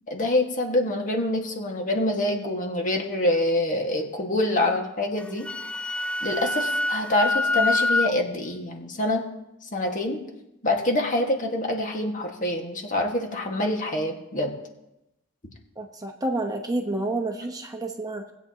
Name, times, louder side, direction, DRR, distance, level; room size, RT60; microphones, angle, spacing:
voice 1, 0.1-5.5 6.2-9.2 9.7-10.2 10.6-14.6, left 1 dB, 40° left, 2 dB, 1.6 m, -25 dB
Wind instrument woodwind instrument, 5.2-8.1, left 2 dB, 5° left, 0.3 m, -25 dB
voice 2, 15.8-18.3, right 2 dB, 20° right, 4 dB, 0.9 m, -29 dB
19.5 x 8.2 x 2.8 m, 0.88 s
head